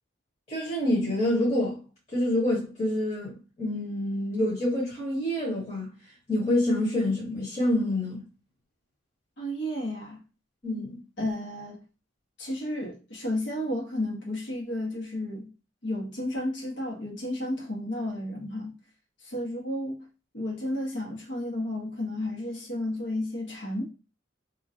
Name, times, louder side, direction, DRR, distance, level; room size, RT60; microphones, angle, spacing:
voice 1, 0.5-1.8 2.1-5.9 6.3-8.2 10.6-11.0, left 1 dB, 35° left, 1.3 m, -27 dB
voice 2, 9.4-10.2 11.2-11.8 12.4-15.5 15.8-18.7 19.2-20.1 20.3-23.9, left 1 dB, 75° left, 1.5 m, -32 dB
3.7 x 2.9 x 2.8 m
head